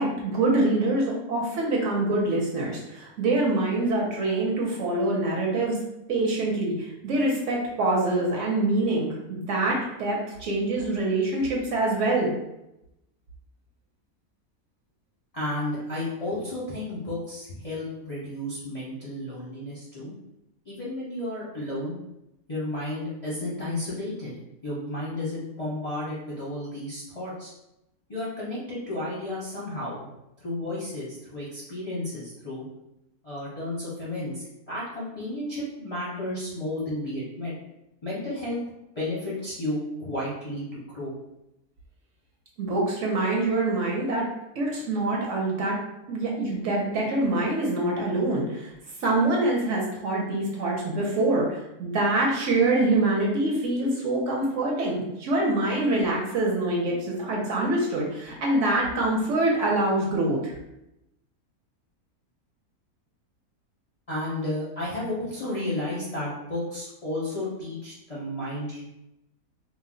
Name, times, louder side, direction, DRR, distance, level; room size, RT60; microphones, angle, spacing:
voice 1, 0.0-5.8 6.1-12.3 42.6-44.3 44.6-45.8 46.1-48.7 49.0-60.5, right 2 dB, 65° right, -2 dB, 0.9 m, -25 dB
voice 2, 15.3-20.1 20.7-21.9 22.5-27.5 28.1-30.1 30.4-32.6 33.2-37.5 38.0-38.6 39.0-41.1 64.1-68.8, left 1 dB, 40° left, -8 dB, 0.5 m, -32 dB
2.5 x 2.0 x 3.7 m, 0.88 s
omnidirectional pair, 1.5 m